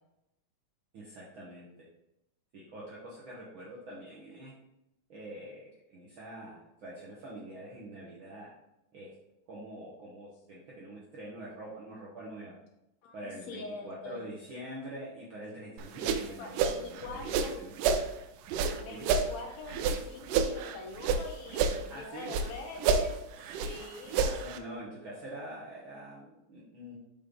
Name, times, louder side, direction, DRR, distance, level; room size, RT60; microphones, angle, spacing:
voice 1, 0.9-1.7 2.5-4.5 5.1-8.5 8.9-9.1 9.5-12.5 13.1-16.5 16.8-17.7 18.9-19.0 21.9-22.3 24.2-27.0, right 1 dB, 60° right, -6 dB, 1.3 m, -45 dB
voice 2, 13.0-14.3 16.1-17.5 18.7-24.3, left 3 dB, 70° left, 3 dB, 1.8 m, -44 dB
sound 1, 15.8-18.1 18.5-21.2 21.5-22.5 22.8-24.6, right 5 dB, 90° right, 2.2 m, -29 dB
5.3 x 5.3 x 3.7 m, 0.87 s
omnidirectional pair, 3.6 m